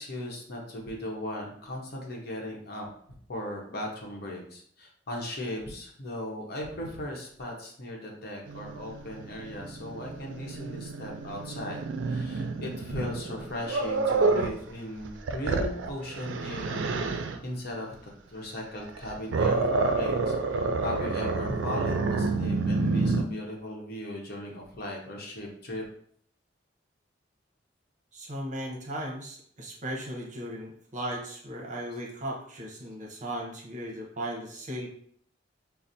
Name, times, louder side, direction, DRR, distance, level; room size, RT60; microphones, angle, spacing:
voice 1, 0.0-2.9 3.3-17.9 18.3-25.8, left 1 dB, 55° left, 0 dB, 0.9 m, -37 dB
Growling, 8.5-14.6 15.0-17.4 18.8-23.2, right 3 dB, 80° right, 0.4 m, -29 dB
voice 2, 28.1-34.9, right 1 dB, 40° right, 0 dB, 0.8 m, -37 dB
5.7 x 2.0 x 2.6 m, 0.62 s
head